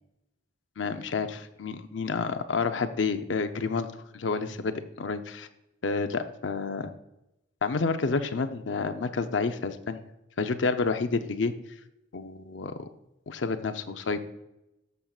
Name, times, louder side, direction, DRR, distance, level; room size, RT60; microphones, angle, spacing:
voice 1, 0.8-5.5 5.8-6.9 7.6-10.0 10.4-11.5 12.1-12.7 13.3-14.2, left 4 dB, 85° left, 9 dB, 0.6 m, -29 dB
13.0 x 6.8 x 2.4 m, 0.92 s
head